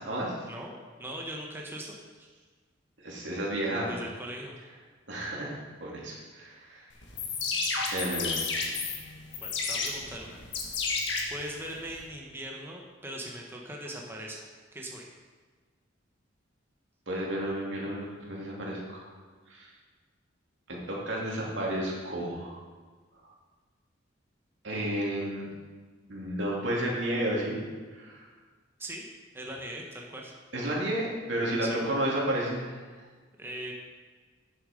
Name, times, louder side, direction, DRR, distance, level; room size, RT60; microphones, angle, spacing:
voice 1, 0.5-2.3 3.8-4.5 9.4-10.4 10.9-11.0 11.3-14.4 14.7-15.1 28.8-29.0 29.3-30.3 31.6-31.8 33.4-33.7, right 1 dB, 10° right, -1 dB, 1.2 m, -40 dB
voice 2, 3.0-3.9 5.1-6.8 7.9-8.4 17.1-19.1 19.5-19.7 20.7-22.6 24.6-25.5 26.1-27.6 27.9-28.3 30.5-32.8, right 1 dB, 65° right, -4 dB, 2.9 m, -32 dB
sound 1, 7.0-12.0, left 4 dB, 65° left, 1.7 m, -32 dB
11.0 x 7.6 x 5.2 m, 1.4 s
head